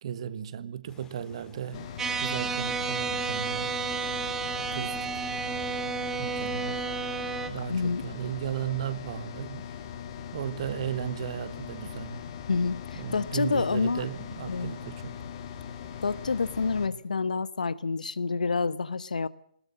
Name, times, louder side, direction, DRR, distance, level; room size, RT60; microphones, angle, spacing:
voice 1, 0.0-1.9 2.2-3.8 4.6-5.4 6.2-6.9 7.5-9.7 10.3-12.2 12.9-15.1, right 9 dB, 40° right, 1.4 m, -35 dB
sound 1, 0.9-5.8, left 5 dB, 10° left, 2.6 m, -53 dB
sound 2, 1.7-16.9, left 7 dB, 30° left, 2.4 m, -40 dB
sound 3, 2.0-7.5, right 5 dB, 10° right, 1.4 m, -31 dB
voice 2, 7.7-8.0 12.5-14.1 14.5-14.7 16.0-19.3, left 4 dB, 65° left, 1.1 m, -28 dB
21.0 x 20.0 x 7.6 m
figure-of-eight pair, 135°, 5 cm